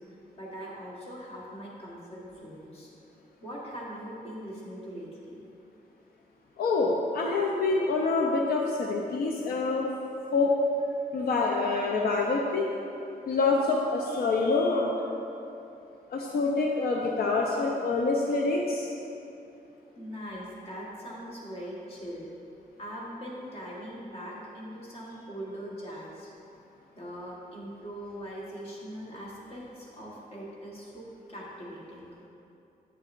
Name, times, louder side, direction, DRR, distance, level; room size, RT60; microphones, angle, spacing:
voice 1, 0.4-2.9 3.4-5.4 19.9-22.3 22.8-26.3 26.9-32.1, equal, 40° left, -5 dB, 1.3 m, -41 dB
voice 2, 6.6-9.9 10.3-10.6 11.1-12.7 13.3-14.9 16.1-18.9, left 3 dB, 75° left, -1 dB, 0.5 m, -26 dB
8.5 x 6.5 x 2.5 m, 2.8 s
wide cardioid pair, 175°, 16 cm